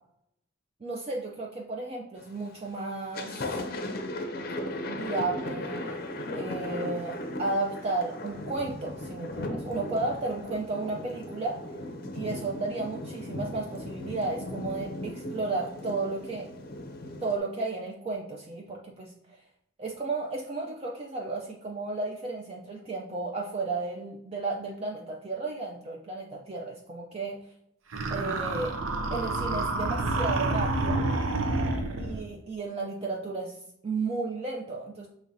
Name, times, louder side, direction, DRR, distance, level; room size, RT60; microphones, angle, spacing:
voice 1, 0.8-3.4 4.9-6.0 6.3-11.6 12.1-16.5 17.2-19.4 19.8-27.4 28.1-28.8 29.1-31.0 32.0-35.1, right 3 dB, 30° right, -1 dB, 0.4 m, -33 dB
Thunder, 2.2-2.6 3.0-17.4, left 1 dB, 50° left, 0.5 m, -37 dB
sound 1, 27.9-32.3, right 2 dB, 85° right, 0.6 m, -28 dB
6.0 x 3.1 x 2.6 m, 0.78 s
head